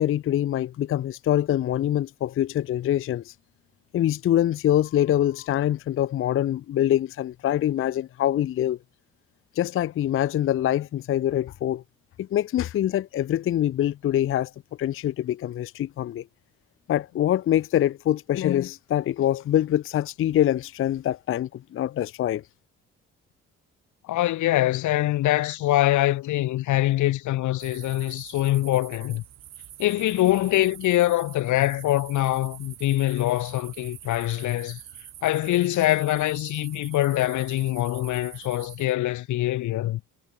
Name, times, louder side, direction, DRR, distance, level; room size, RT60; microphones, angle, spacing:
voice 1, 0.0-3.3 3.9-8.8 9.6-11.8 12.2-14.5 14.8-16.2 16.9-22.4, left 12 dB, 45° left, 0.4 m, -24 dB
voice 2, 24.1-29.2 29.8-34.8 35.2-40.0, left 15 dB, 75° left, 0.9 m, -24 dB
sound 1, 27.6-38.9, right 11 dB, 60° right, 1.1 m, -45 dB
cardioid pair, 90°, 30 cm